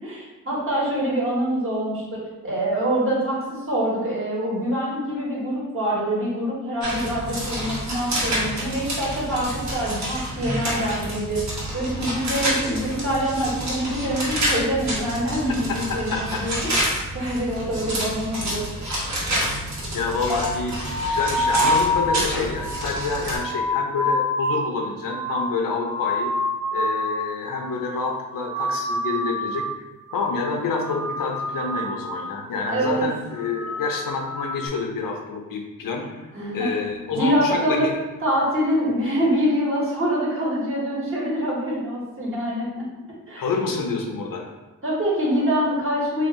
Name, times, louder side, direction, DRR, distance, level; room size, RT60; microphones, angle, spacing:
voice 1, 0.0-11.4 11.7-16.8 17.1-18.6 32.7-33.1 36.3-36.7 37.1-37.9 38.2-42.8 43.3-43.4 44.8-46.3, equal, 40° right, -6 dB, 1.3 m, -25 dB
sound 1, 6.8-23.4, right 1 dB, 55° right, 1.1 m, -28 dB
voice 2, 15.7-16.4 19.9-26.3 26.7-29.7 30.1-36.2 36.5-37.9 43.4-44.5, left 4 dB, 70° left, 2 dB, 0.6 m, -28 dB
sound 2, 20.3-27.3 27.5-28.1 28.3-29.8 30.1-30.5 30.8-32.3 32.6-33.0 33.3-34.7, left 1 dB, ahead, 0.5 m, -27 dB
2.7 x 2.4 x 3.6 m, 1.1 s
wide cardioid pair, 95°, 34 cm